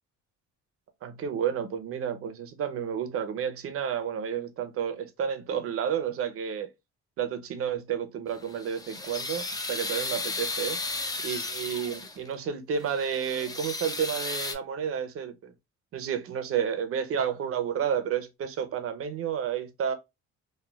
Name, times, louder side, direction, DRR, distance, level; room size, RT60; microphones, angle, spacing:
voice 1, 1.0-6.7 7.2-10.8 11.2-15.5 15.9-19.9, right 8 dB, 50° right, 0.6 m, -31 dB
sound 1, 8.3-12.3 12.8-14.5, left 3 dB, 15° left, 0.4 m, -34 dB
3.2 x 2.3 x 2.2 m
cardioid pair, 115°, 29 cm